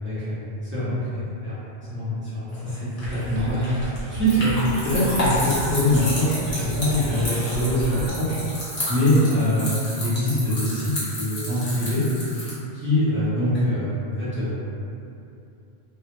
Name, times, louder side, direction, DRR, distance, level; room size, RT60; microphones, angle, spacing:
voice 1, 0.0-3.6 4.1-8.4 8.9-12.0 12.7-14.5, equal, 20° right, -12 dB, 0.4 m, -24 dB
sound 1, 2.5-12.5, left 1 dB, 40° left, 0.7 m, -31 dB
sound 2, 3.0-8.1, right 1 dB, 65° right, 0.7 m, -34 dB
2.1 x 2.0 x 2.9 m, 2.6 s
omnidirectional pair, 1.1 m